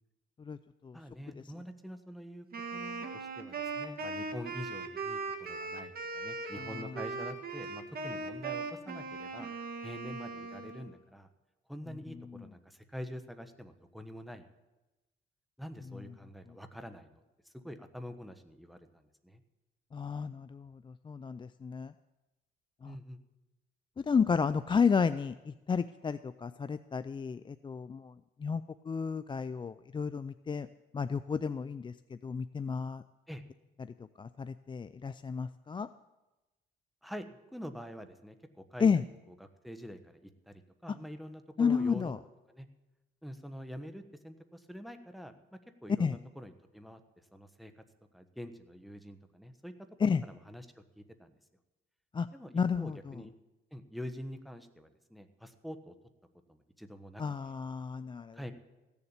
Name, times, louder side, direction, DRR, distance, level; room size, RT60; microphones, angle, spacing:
voice 1, 0.9-2.5 2.7-9.5 9.8-11.3 11.7-14.5 15.6-19.4 22.8-23.2 33.3-33.4 37.0-39.0 39.4-42.1 42.5-42.7 43.2-47.0 47.3-47.7 48.1-49.9 50.2-51.4 52.3-53.3 53.7-55.9 56.5-57.2 58.3-58.5, equal, ahead, 8 dB, 1.2 m, -46 dB
Wind instrument woodwind instrument, 2.5-10.9, right 4 dB, 50° right, 1.7 m, -39 dB
voice 2, 6.6-7.0 12.1-12.4 19.9-21.9 22.8-23.0 24.0-30.7 30.9-33.0 33.8-35.9 38.8-39.0 41.6-42.2 46.0-46.2 50.0-50.2 52.1-52.3 52.5-53.3 57.2-58.4, left 6 dB, 25° left, 12 dB, 0.4 m, -32 dB
16.0 x 7.1 x 8.2 m, 1.1 s
cardioid pair, 90°, 20 cm